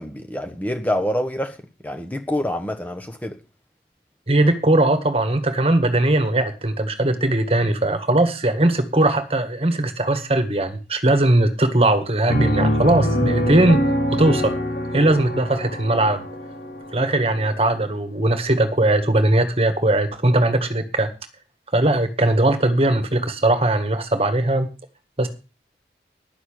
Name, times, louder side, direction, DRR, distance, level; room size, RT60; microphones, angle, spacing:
voice 1, 0.0-1.6 1.8-3.4, left 1 dB, 10° left, 1.2 m, -26 dB
voice 2, 4.3-13.8 14.1-14.6 14.9-16.2 16.9-21.1 21.7-24.7 25.2-25.3, right 1 dB, 35° right, 1.8 m, -19 dB
Piano, 12.3-17.8, equal, 60° left, 3.5 m, -24 dB
11.0 x 7.1 x 8.7 m
head